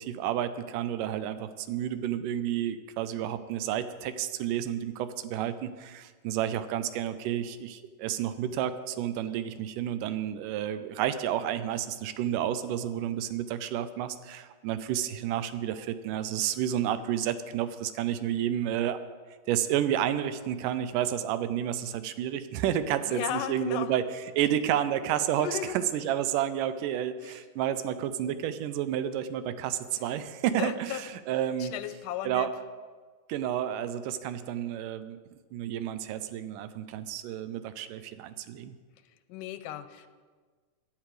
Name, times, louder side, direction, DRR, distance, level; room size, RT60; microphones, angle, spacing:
voice 1, 0.0-19.0 19.5-24.0 24.4-31.7 32.2-32.5 33.3-35.2 35.5-38.7, right 10 dB, 80° right, 12 dB, 2.2 m, -30 dB
voice 2, 23.0-23.9 25.4-26.0 27.2-27.4 30.0-30.2 30.6-31.2 31.6-32.5 39.3-40.1, left 11 dB, 85° left, 11 dB, 2.2 m, -36 dB
16.0 x 11.0 x 5.0 m, 1.5 s
omnidirectional pair, 3.9 m